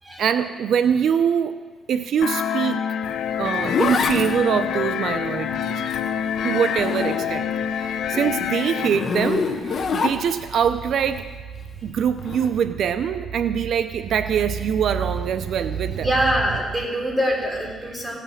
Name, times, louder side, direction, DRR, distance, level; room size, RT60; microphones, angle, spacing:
voice 1, 0.2-1.6 1.9-2.9 3.4-5.8 6.4-11.3 11.8-16.3 17.6-18.0, right 8 dB, 65° right, 11 dB, 0.5 m, -24 dB
sound 1, 2.2-8.9, left 8 dB, 70° left, 0.6 m, -26 dB
Zipper (clothing), 3.1-7.6 7.9-10.6 12.2-12.5, left 5 dB, 50° left, 1.1 m, -27 dB
voice 2, 16.0-18.2, equal, 10° right, -2 dB, 3.5 m, -24 dB
16.5 x 5.9 x 7.2 m, 1.4 s
cardioid pair, 90°, 0 cm